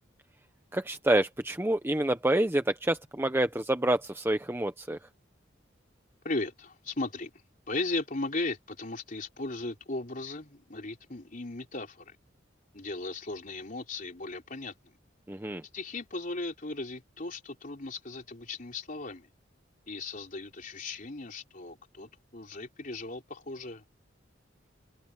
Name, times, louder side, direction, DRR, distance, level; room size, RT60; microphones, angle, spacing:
voice 1, 0.7-5.0 15.3-15.6, right 1 dB, 10° right, 0.9 m, -27 dB
voice 2, 6.2-7.3 7.7-12.2 12.7-14.9 15.7-19.3 19.9-23.8, left 2 dB, 45° left, 3.7 m, -37 dB
head